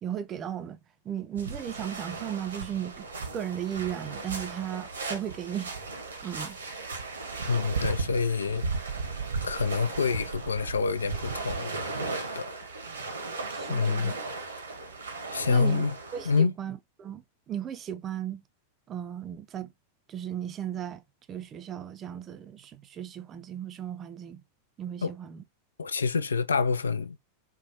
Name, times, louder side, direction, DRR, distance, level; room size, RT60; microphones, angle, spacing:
voice 1, 0.0-0.8 1.0-3.1 3.3-5.7 6.2-6.6 13.5-14.2 15.5-18.4 18.9-19.7 20.1-21.0 21.3-24.4 24.8-25.4, right 9 dB, 30° right, 0.4 m, -36 dB
sound 1, 1.3-16.4, right 4 dB, 70° right, 0.8 m, -36 dB
voice 2, 7.5-8.6 9.4-11.7 12.1-12.5 13.7-14.1 15.3-16.0 16.3-16.5 25.0-25.1 25.8-27.2, left 5 dB, 70° left, 0.3 m, -27 dB
3.9 x 2.2 x 2.8 m
figure-of-eight pair, 90°, 0 cm